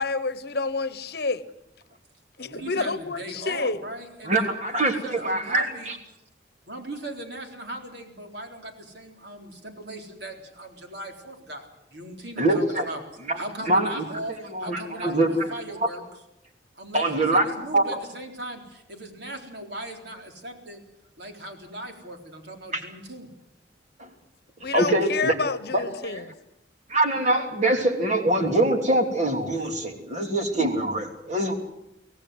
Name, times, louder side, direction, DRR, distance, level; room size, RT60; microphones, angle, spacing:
voice 1, 0.0-1.4 2.4-3.8 24.6-26.3, left 3 dB, 60° left, 1.1 m, -28 dB
voice 2, 2.4-5.9 6.7-13.0 13.4-16.0 16.8-20.8 21.2-23.3, right 1 dB, 65° right, 3.9 m, -38 dB
voice 3, 4.2-6.0 12.4-12.9 13.3-14.2 14.5-15.9 16.9-17.5 17.7-17.9 22.7-22.8 24.0-24.1 24.7-25.3 25.7-26.2 26.9-31.5, right 1 dB, 40° right, 3.1 m, -24 dB
24.5 x 17.0 x 8.0 m
head